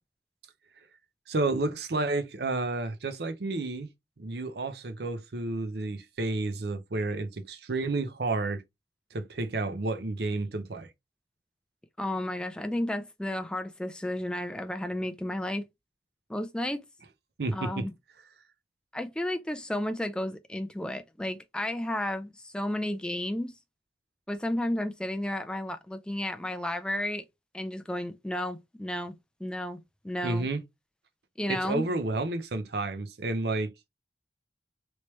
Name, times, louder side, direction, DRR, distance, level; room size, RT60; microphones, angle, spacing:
voice 1, 1.3-3.9 4.2-8.6 9.1-10.9 17.4-17.9 30.2-30.6 31.5-33.7, right 2 dB, 60° right, 0.6 m, -31 dB
voice 2, 12.0-15.7 16.3-16.8 17.5-17.9 18.9-23.6 24.3-27.3 27.5-29.1 29.4-29.8 30.0-30.5 31.4-31.9, left 1 dB, 5° left, 0.4 m, -32 dB
3.1 x 3.1 x 3.0 m
head